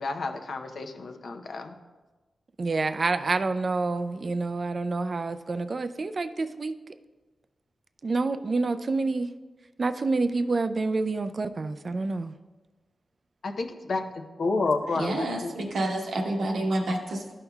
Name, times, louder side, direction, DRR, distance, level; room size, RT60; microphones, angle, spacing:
voice 1, 0.0-1.7 13.4-15.7, left 3 dB, 65° left, 5 dB, 0.6 m, -30 dB
voice 2, 2.6-6.7 8.0-9.3 9.8-12.3, right 3 dB, 45° right, 10 dB, 0.3 m, -28 dB
voice 3, 14.9-17.3, right 1 dB, 85° right, 1 dB, 1.1 m, -28 dB
12.5 x 5.5 x 2.3 m, 1.2 s
wide cardioid pair, 95°, 0 cm